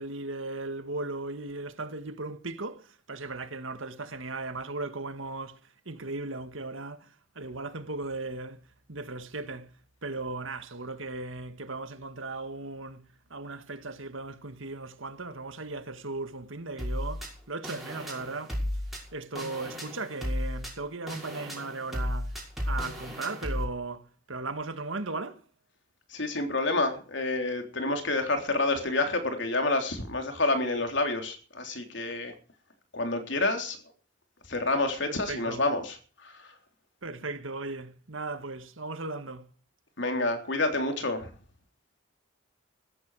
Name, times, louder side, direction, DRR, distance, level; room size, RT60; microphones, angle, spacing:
voice 1, 0.0-18.6 19.1-22.4 22.7-25.4 35.1-35.6 37.0-39.5, right 3 dB, 80° right, 1.9 m, -37 dB
sound 1, 16.8-23.6, left 1 dB, ahead, 5.8 m, -34 dB
voice 2, 26.1-32.4 32.9-33.8 34.5-36.6 40.0-41.3, left 2 dB, 65° left, 3.6 m, -28 dB
15.5 x 14.0 x 4.9 m
head